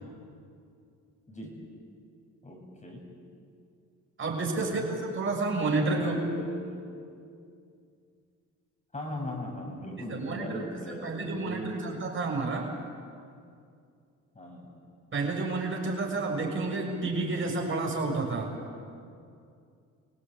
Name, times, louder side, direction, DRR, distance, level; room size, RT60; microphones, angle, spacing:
voice 1, 1.3-1.6 2.4-3.0 4.6-4.9 5.9-6.9 8.9-11.8 14.3-14.7, left 1 dB, 25° left, 1 dB, 7.9 m, -39 dB
voice 2, 4.2-4.8 5.1-6.2 10.1-12.7 15.1-18.5, right 3 dB, 40° right, 0 dB, 6.9 m, -30 dB
27.0 x 18.0 x 9.5 m, 2.4 s
cardioid pair, 90°, 30 cm